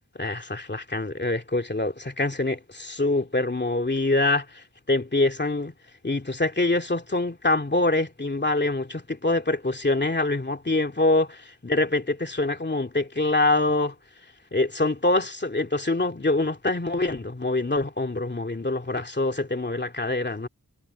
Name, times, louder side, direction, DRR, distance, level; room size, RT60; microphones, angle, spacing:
voice 1, 0.2-5.7 6.0-14.0 14.5-20.5, left 2 dB, 30° left, 2.6 m, -25 dB
wide cardioid pair, 100°, 36 cm